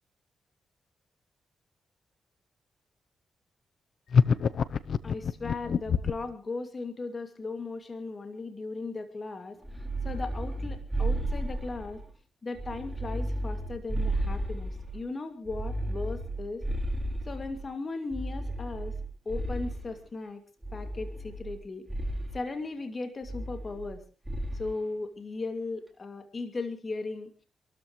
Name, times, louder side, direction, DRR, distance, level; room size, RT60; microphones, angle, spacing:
sound 1, 4.1-6.3, left 6 dB, 65° left, 0.7 m, -25 dB
voice 1, 5.0-12.0 12.4-16.6 17.3-18.9 19.3-20.4 20.7-21.8 22.3-24.0 24.5-27.3, left 3 dB, 40° left, 6 dB, 2.5 m, -37 dB
sound 2, 9.6-12.1 12.5-15.0 15.5-17.6 18.1-20.0 20.6-21.6 21.9-22.4 23.2-24.0 24.3-24.7, right 1 dB, 15° right, 3.7 m, -33 dB
27.0 x 13.5 x 3.2 m, 0.33 s
cardioid pair, 65°, 0 cm